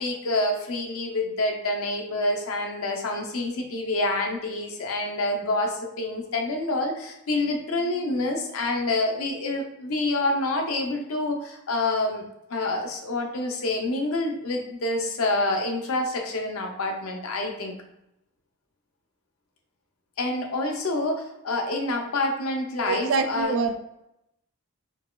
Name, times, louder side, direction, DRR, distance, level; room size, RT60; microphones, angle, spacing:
voice 1, 0.0-17.7 20.2-23.6, left 2 dB, 70° left, 3 dB, 0.5 m, -27 dB
voice 2, 22.9-23.8, right 4 dB, 60° right, 8 dB, 0.3 m, -25 dB
3.9 x 2.2 x 2.3 m, 0.85 s
head